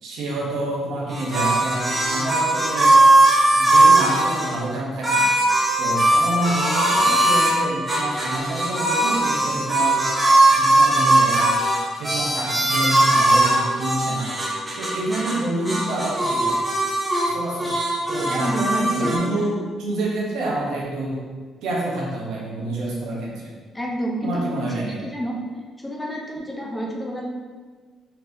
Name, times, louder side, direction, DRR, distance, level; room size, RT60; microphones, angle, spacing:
voice 1, 0.0-3.0 3.5-5.3 5.8-10.0 10.6-11.6 11.9-14.4 14.8-16.6 17.2-17.7 18.1-21.2 21.6-23.5 24.2-25.1, right 2 dB, 85° right, -4 dB, 1.0 m, -28 dB
sound 1, 1.1-4.5 5.0-7.6 7.9-15.4 15.6-17.3 17.6-19.2, right 2 dB, 15° right, 1.1 m, -19 dB
voice 2, 18.3-19.4 23.7-24.6 25.0-25.4 25.8-27.2, equal, 10° left, -2 dB, 0.8 m, -28 dB
4.1 x 3.9 x 2.8 m, 1.4 s
cardioid pair, 90°, 0 cm